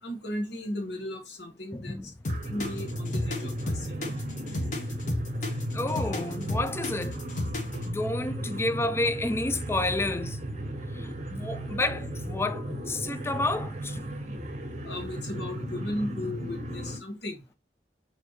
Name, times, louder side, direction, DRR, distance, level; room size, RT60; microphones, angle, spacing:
voice 1, 0.0-2.1 2.5-4.0 14.8-17.4, left 1 dB, 70° left, 1.2 m, -35 dB
voice 2, 1.7-2.1 5.7-7.2 7.8-10.4 10.9-14.2, left 2 dB, 15° left, 0.4 m, -30 dB
sound 1, 2.2-7.9, left 1 dB, 45° left, 1.0 m, -32 dB
sound 2, 2.2-17.0, right 1 dB, 40° right, 0.7 m, -35 dB
4.2 x 2.8 x 3.0 m
head